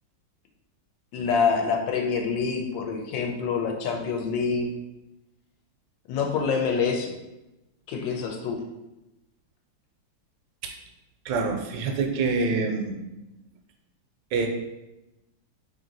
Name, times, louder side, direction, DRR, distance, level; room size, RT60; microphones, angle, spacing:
voice 1, 1.1-4.7 6.1-7.1 7.9-8.6, left 5 dB, 85° left, 3 dB, 1.3 m, -26 dB
voice 2, 11.2-13.0 14.3-14.5, right 4 dB, 75° right, 3 dB, 1.1 m, -26 dB
3.1 x 2.7 x 3.9 m, 0.97 s
omnidirectional pair, 2.0 m